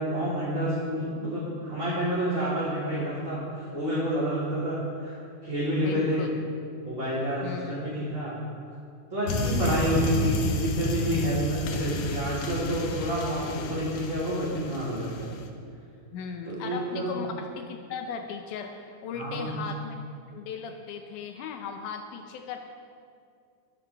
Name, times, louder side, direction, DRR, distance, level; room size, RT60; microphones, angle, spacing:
voice 1, 0.0-5.2 5.4-6.3 6.8-8.4 9.1-15.3 16.4-17.1 19.1-19.6, right 1 dB, 25° right, -11 dB, 3.6 m, -29 dB
voice 2, 5.8-6.3 7.4-7.8 16.1-20.0 20.3-22.6, left 6 dB, 80° left, 5 dB, 2.2 m, -37 dB
sound 1, 9.3-15.5, left 2 dB, 65° left, 1.7 m, -31 dB
22.0 x 10.0 x 3.5 m, 2.4 s
omnidirectional pair, 3.5 m